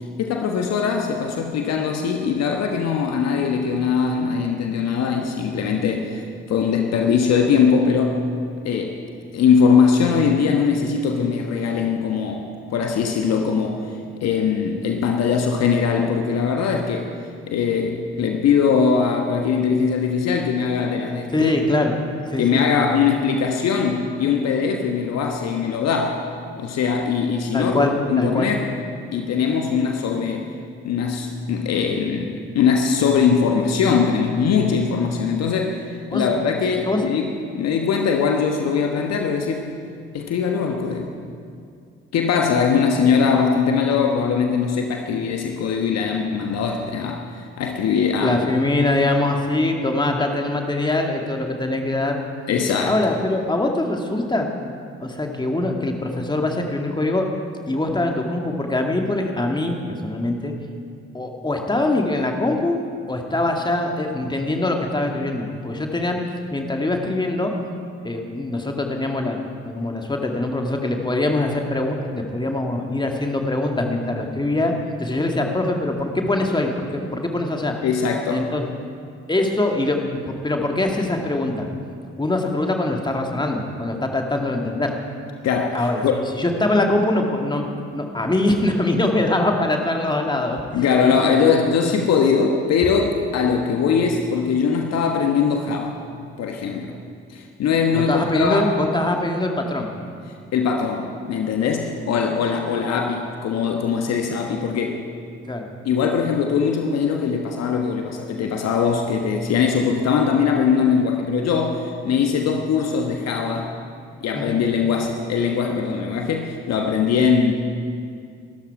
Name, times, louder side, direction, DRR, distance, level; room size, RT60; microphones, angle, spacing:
voice 1, 0.2-8.2 8.6-9.0 9.3-13.8 14.2-17.1 17.5-21.5 22.4-26.2 26.6-28.7 29.1-30.5 30.8-39.7 40.1-41.1 42.1-48.4 52.5-53.0 77.8-78.5 85.4-86.2 90.7-96.0 96.4-96.9 97.3-98.7 100.5-105.0 105.8-113.7 114.2-117.5, left 6 dB, 50° left, 3 dB, 1.3 m, -21 dB
voice 2, 21.3-22.6 27.5-28.5 36.1-36.2 36.9-37.0 48.2-52.2 52.9-54.5 55.0-57.3 57.7-59.8 60.0-60.5 61.1-62.8 63.1-66.2 66.5-67.5 68.0-69.4 69.6-74.7 75.0-77.7 78.3-78.6 79.3-80.0 80.3-81.7 82.2-84.9 85.7-86.0 86.3-87.7 87.9-90.6 91.0-91.3 97.9-99.9 105.5-105.6 114.3-114.6, left 2 dB, 15° left, 2 dB, 2.1 m, -23 dB
21.0 x 13.0 x 4.8 m, 2.3 s
figure-of-eight pair, 45°, 33 cm